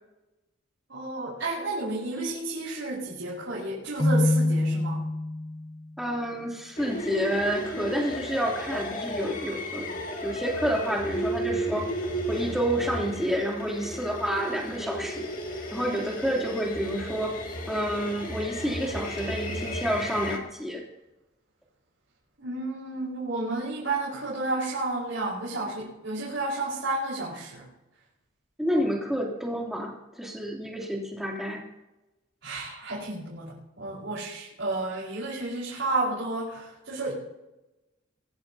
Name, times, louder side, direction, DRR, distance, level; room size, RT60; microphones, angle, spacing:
voice 1, 0.9-5.1 22.4-27.7 32.4-37.1, right 2 dB, 70° right, -6 dB, 4.8 m, -31 dB
Keyboard (musical), 4.0-5.9, left 1 dB, 20° left, 0.6 m, -25 dB
voice 2, 6.0-9.9 10.2-11.9 12.3-15.3 15.7-17.4 17.7-20.8 28.6-31.6, equal, ahead, -2 dB, 2.9 m, -29 dB
sound 1, 6.8-20.4, equal, 45° left, 2.3 m, -34 dB
22.5 x 14.5 x 2.8 m, 0.97 s
head